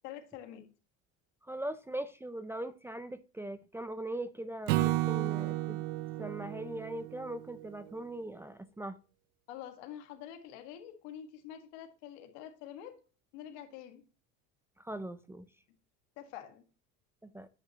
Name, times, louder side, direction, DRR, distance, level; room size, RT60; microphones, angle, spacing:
voice 1, 0.0-0.7 9.5-13.0 13.3-14.0 16.2-16.7, left 10 dB, 80° left, 1.7 m, -46 dB
voice 2, 1.4-5.8 6.2-9.0 14.8-15.5 17.2-17.5, right 1 dB, 5° right, 0.4 m, -40 dB
Acoustic guitar / Strum, 4.7-8.0, right 16 dB, 70° right, 0.5 m, -33 dB
10.0 x 5.6 x 2.9 m
cardioid pair, 125°, 34 cm